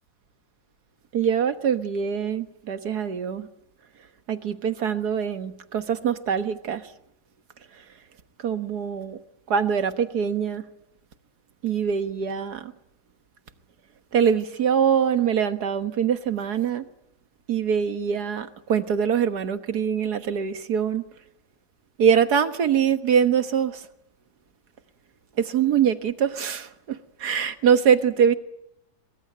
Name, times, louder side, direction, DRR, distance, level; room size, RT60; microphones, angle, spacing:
voice 1, 1.1-3.5 4.3-6.8 8.4-9.2 9.5-10.6 11.6-12.7 14.1-16.8 17.5-21.0 22.0-23.8 25.4-28.3, right 7 dB, 55° right, 9 dB, 1.7 m, -23 dB
23.0 x 22.0 x 9.2 m, 0.79 s
omnidirectional pair, 2.1 m